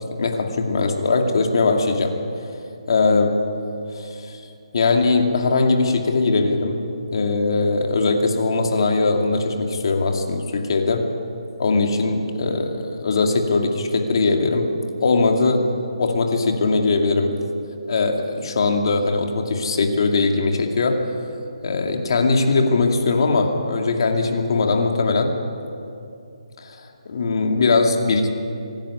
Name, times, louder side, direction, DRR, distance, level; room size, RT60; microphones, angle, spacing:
voice 1, 0.1-2.2 2.9-3.5 3.9-4.4 4.7-6.8 7.1-11.1 11.6-14.7 15.0-15.7 16.0-17.3 17.9-21.1 21.6-25.4 26.6-28.3, left 3 dB, 50° left, 3 dB, 2.4 m, -20 dB
25.5 x 10.5 x 9.9 m, 2.6 s
hypercardioid pair, 165°, 3 cm